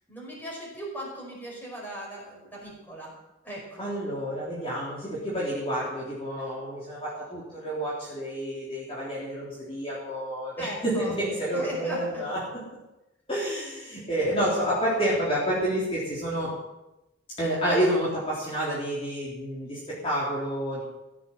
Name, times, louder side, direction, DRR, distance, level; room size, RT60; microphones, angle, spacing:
voice 1, 0.1-3.1 3.4-4.2 10.6-11.2 11.5-12.2, right 1 dB, 10° left, -3 dB, 5.2 m, -38 dB
voice 2, 3.8-12.8 13.3-16.5 17.4-20.8, equal, 30° left, -7 dB, 3.7 m, -29 dB
15.5 x 7.7 x 7.7 m, 0.96 s
head